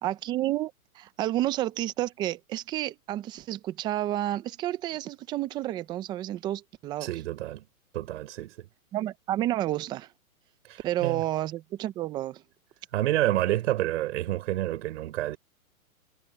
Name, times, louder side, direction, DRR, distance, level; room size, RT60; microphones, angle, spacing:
voice 1, 0.0-7.1 8.9-10.1 10.8-12.4, right 14 dB, 10° right, 0.5 m, -30 dB
voice 2, 7.0-7.6 7.9-8.7 10.6-11.2 12.9-15.4, right 14 dB, 55° right, 3.9 m, -29 dB
hypercardioid pair, 140°, 43 cm